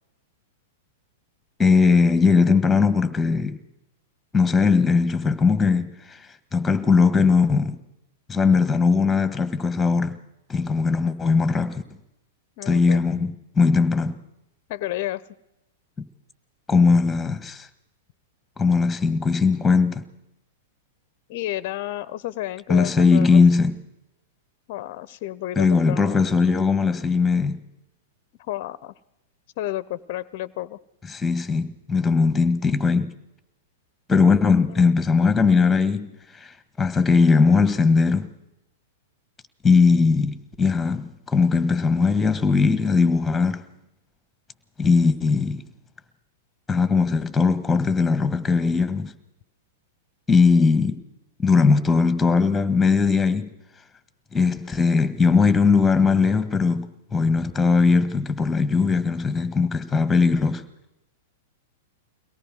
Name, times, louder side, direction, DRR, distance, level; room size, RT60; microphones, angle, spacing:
voice 1, 1.6-3.6 4.3-6.2 6.5-7.8 8.3-10.2 10.5-11.8 12.6-14.2 16.0-16.1 16.7-17.7 18.6-20.0 22.7-23.8 25.5-27.6 31.1-33.1 34.1-36.1 36.4-36.5 36.8-38.3 39.6-43.6 44.8-45.6 46.7-49.1 50.3-51.0 51.4-53.5 54.3-60.6, left 4 dB, 10° left, 1.7 m, -19 dB
voice 2, 12.6-13.0 14.7-15.2 21.3-23.4 24.7-26.2 28.4-28.9 29.6-30.8, left 14 dB, 50° left, 0.7 m, -31 dB
23.5 x 18.0 x 6.3 m
figure-of-eight pair, 100°, 0 cm